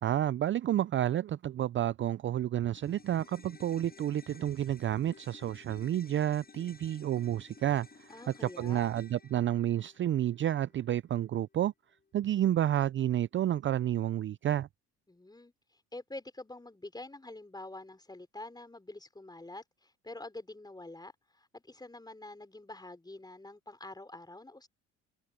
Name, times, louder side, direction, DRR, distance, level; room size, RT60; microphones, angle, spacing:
voice 1, 0.0-11.7 12.1-14.7, right 11 dB, 35° right, 0.5 m, -30 dB
sound 1, 2.8-11.3 11.5-11.6, left 4 dB, 30° left, 7.6 m, -55 dB
voice 2, 8.1-8.9 15.1-15.5 15.9-24.7, left 2 dB, 10° left, 4.8 m, -46 dB
supercardioid pair, 70°, 33 cm